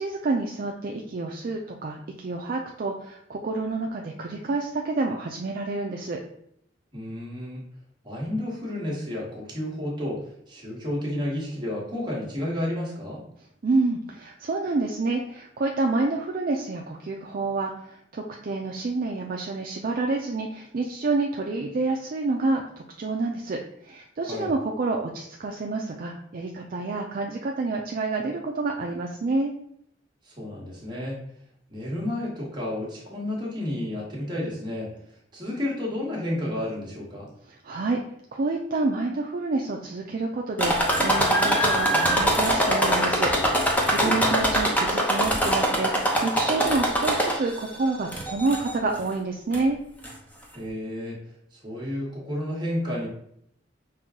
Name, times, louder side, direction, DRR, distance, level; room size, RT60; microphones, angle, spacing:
voice 1, 0.0-6.2 13.6-22.6 23.0-29.5 37.6-38.0 38.3-49.8, right 3 dB, 50° right, 1 dB, 0.4 m, -28 dB
voice 2, 6.9-7.6 8.0-13.2 24.2-24.5 30.3-31.2 31.7-34.9 35.3-37.3 44.0-44.2 50.5-51.2 51.5-53.1, left 1 dB, 25° right, -4 dB, 1.4 m, -31 dB
sound 1, 40.6-47.6 48.1-48.7 49.5-49.6 50.0-50.1, equal, 10° left, 0.7 m, -23 dB
5.5 x 2.3 x 3.6 m, 0.71 s
head